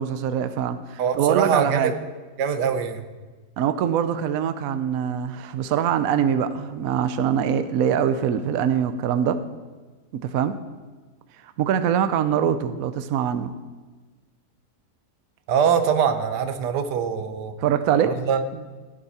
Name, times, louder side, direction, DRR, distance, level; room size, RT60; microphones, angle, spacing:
voice 1, 0.0-1.9 3.6-9.4 10.1-10.5 11.6-13.5 17.6-18.1 18.5-18.6, right 8 dB, 65° right, 10 dB, 1.0 m, -23 dB
voice 2, 1.0-1.9 2.4-3.0 15.5-17.5 18.0-18.4, right 7 dB, 85° right, 8 dB, 1.6 m, -23 dB
15.5 x 10.5 x 4.2 m, 1.3 s
omnidirectional pair, 1.7 m